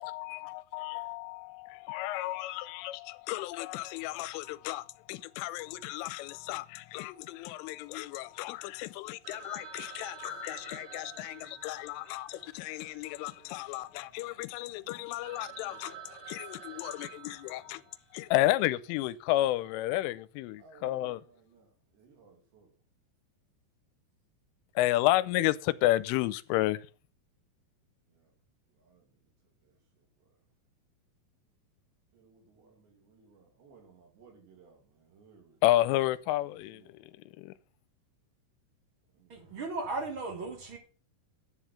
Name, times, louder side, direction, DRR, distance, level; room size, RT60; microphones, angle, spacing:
voice 1, 0.0-15.9 16.3-17.8 18.1-21.2 24.8-26.8 35.6-36.8 37.4-37.5, left 15 dB, 85° left, 3.1 m, -32 dB
Telephone, 9.2-13.6 13.9-14.0 14.5-14.6 14.9-15.0 15.2-18.2, right 8 dB, 80° right, 6.0 m, -49 dB
voice 2, 10.2-14.2 14.6-16.1 16.8-17.9 19.4-19.7 20.6-22.7 28.1-28.3 28.7-29.1 29.6-30.3 32.1-35.6 36.4-37.3 39.1-39.6, right 5 dB, 65° right, 4.3 m, -62 dB
voice 3, 39.3-40.8, right 3 dB, 35° right, 2.2 m, -36 dB
10.5 x 7.5 x 5.9 m
omnidirectional pair, 5.7 m